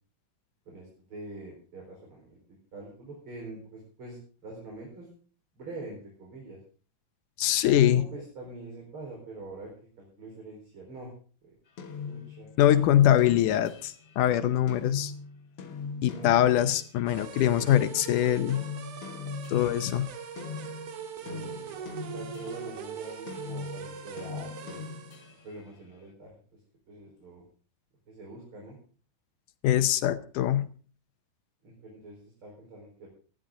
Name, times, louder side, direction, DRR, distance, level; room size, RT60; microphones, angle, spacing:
voice 1, 0.7-5.1 5.6-6.6 7.6-9.7 10.0-11.1 11.4-11.6 12.1-12.5 16.0-16.3 21.2-24.8 25.4-26.6 26.9-27.4 28.1-28.8 31.6-33.1, right 2 dB, 40° right, -1 dB, 5.3 m, -44 dB
voice 2, 7.4-8.0 12.6-15.1 16.0-18.7 19.5-20.1 29.6-30.7, left 11 dB, 80° left, 11 dB, 2.3 m, -23 dB
sound 1, 11.8-17.1 17.6-22.9 23.3-25.7, left 5 dB, 50° left, 2.1 m, -41 dB
sound 2, 17.1-25.4, right 7 dB, 65° right, 2.8 m, -41 dB
19.5 x 13.5 x 3.8 m, 0.41 s
omnidirectional pair, 3.7 m